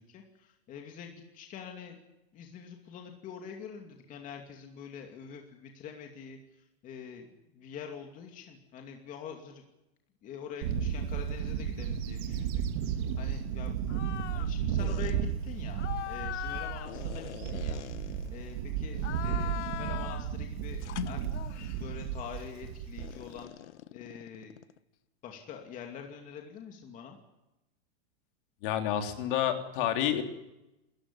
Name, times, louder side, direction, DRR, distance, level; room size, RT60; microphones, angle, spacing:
voice 1, 0.0-2.0 2.3-7.3 7.5-9.6 10.2-14.0 14.3-21.3 21.7-23.5 23.9-24.5 25.2-27.2, left 7 dB, 25° left, 3 dB, 2.5 m, -45 dB
Bird / Wind, 10.6-23.4, right 8 dB, 45° right, 2.8 m, -34 dB
sound 1, 13.9-14.5 14.8-15.1 15.8-18.5 19.0-20.3 20.8-21.9 23.0-24.8, left 13 dB, 90° left, 1.3 m, -41 dB
voice 2, 28.6-30.2, left 10 dB, 50° left, 5 dB, 3.4 m, -29 dB
28.0 x 14.5 x 9.9 m, 0.94 s
supercardioid pair, 170°, 34 cm